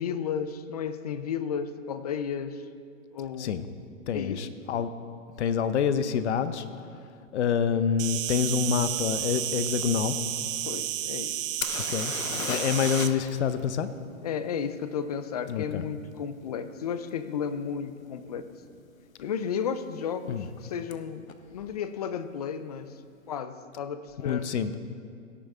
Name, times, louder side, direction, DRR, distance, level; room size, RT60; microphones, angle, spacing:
voice 1, 0.0-2.7 3.1-3.7 4.1-4.4 10.7-11.4 14.2-18.5 19.2-21.3 21.5-23.0 23.3-24.5, left 7 dB, 30° left, 12 dB, 0.4 m, -33 dB
voice 2, 4.1-4.9 5.4-6.6 7.3-10.1 11.7-12.1 12.5-13.9 15.5-15.8 20.3-20.5 24.2-24.8, left 7 dB, 55° left, 12 dB, 0.8 m, -27 dB
Insect, 8.0-13.1, right 12 dB, 70° right, 0.6 m, -31 dB
sound 1, 11.6-13.3 13.6-13.7 17.1-17.2 17.8-18.0 18.3-18.9 20.9-21.0 21.3-21.4, left 7 dB, 85° left, 1.0 m, -35 dB
17.0 x 9.1 x 3.5 m, 2.3 s
hypercardioid pair, 140°, 40 cm